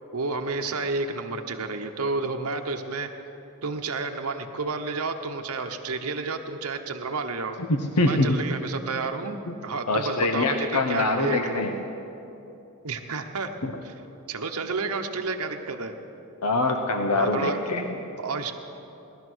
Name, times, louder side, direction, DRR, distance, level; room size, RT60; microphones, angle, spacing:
voice 1, 0.1-3.1 3.6-7.6 8.0-11.5 12.8-13.5 13.8-13.9 14.3-15.9 17.1-17.6 18.2-18.5, right 3 dB, 75° right, 5 dB, 0.9 m, -30 dB
voice 2, 7.6-8.3 9.9-11.7 13.6-13.7 16.4-17.9, left 2 dB, 90° left, 5 dB, 0.9 m, -24 dB
18.0 x 12.0 x 6.2 m, 3.0 s
head